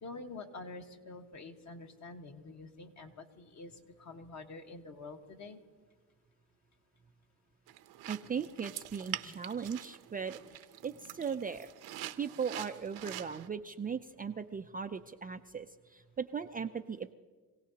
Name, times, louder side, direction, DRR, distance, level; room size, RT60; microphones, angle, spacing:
voice 1, 0.0-5.6 8.2-8.3 9.2-9.4 11.0-11.2, left 3 dB, 45° left, 4 dB, 1.6 m, -47 dB
sound 1, 7.7-13.5, right 13 dB, 65° right, 0.9 m, -45 dB
voice 2, 8.1-10.4 10.8-11.7 12.2-17.1, right 6 dB, 20° right, 6 dB, 0.4 m, -38 dB
26.0 x 17.0 x 2.9 m, 1.5 s
supercardioid pair, 90°, 41 cm